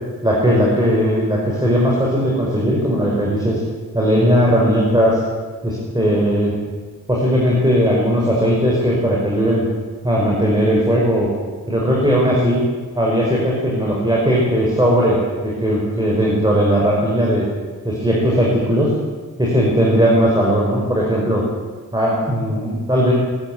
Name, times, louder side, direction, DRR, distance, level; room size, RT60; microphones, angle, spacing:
voice 1, 0.2-3.6 3.9-5.2 5.6-6.5 7.1-9.6 10.0-11.3 11.7-12.6 12.9-17.5 17.8-18.9 19.4-21.4 21.9-23.1, equal, 10° right, -4 dB, 5.7 m, -17 dB
21.5 x 13.5 x 9.4 m, 1.4 s
wide cardioid pair, 95°, 38 cm